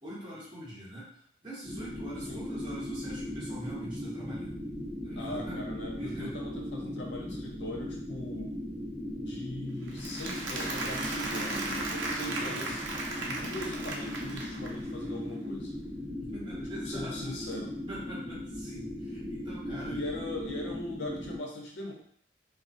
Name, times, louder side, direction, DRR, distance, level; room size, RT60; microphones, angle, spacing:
voice 1, 0.0-4.7 5.0-5.6 6.0-6.4 12.4-12.8 16.2-17.5 17.9-20.0, right 1 dB, 25° right, -8 dB, 0.9 m, -44 dB
sound 1, 1.6-21.4, left 1 dB, 15° left, 0.8 m, -38 dB
voice 2, 5.2-8.5 9.1-12.8 13.2-15.7 16.9-17.7 19.7-21.9, left 1 dB, 70° left, 0 dB, 0.6 m, -40 dB
Applause, 9.9-14.9, right 2 dB, 90° right, 0.5 m, -36 dB
2.3 x 2.1 x 2.5 m, 0.63 s
head